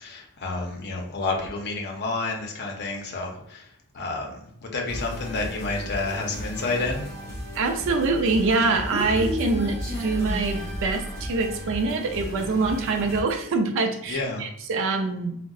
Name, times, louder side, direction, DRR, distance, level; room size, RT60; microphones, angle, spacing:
voice 1, 0.0-7.1 14.1-14.4, left 3 dB, 50° left, 1 dB, 0.6 m, -30 dB
sound 1, 4.9-13.2, equal, 10° left, 1.0 m, -36 dB
voice 2, 7.5-15.4, right 3 dB, 60° right, 6 dB, 0.4 m, -25 dB
Human voice, 8.3-11.3, equal, 40° right, 1.0 m, -32 dB
3.7 x 2.1 x 2.3 m, 0.72 s
head